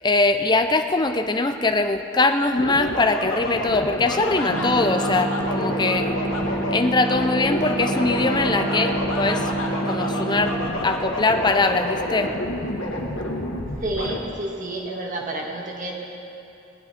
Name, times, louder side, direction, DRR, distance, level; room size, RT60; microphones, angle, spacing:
voice 1, 0.0-6.1 6.7-9.5 9.9-10.6 10.8-12.3, left 3 dB, 20° left, 7 dB, 0.5 m, -22 dB
sound 1, 2.6-14.2, left 1 dB, 70° left, 1.8 m, -29 dB
sound 2, 4.5-10.7, right 2 dB, 60° right, 2.0 m, -27 dB
voice 2, 13.8-15.9, right 1 dB, 40° right, -1 dB, 1.9 m, -29 dB
19.0 x 11.5 x 4.3 m, 2.9 s
head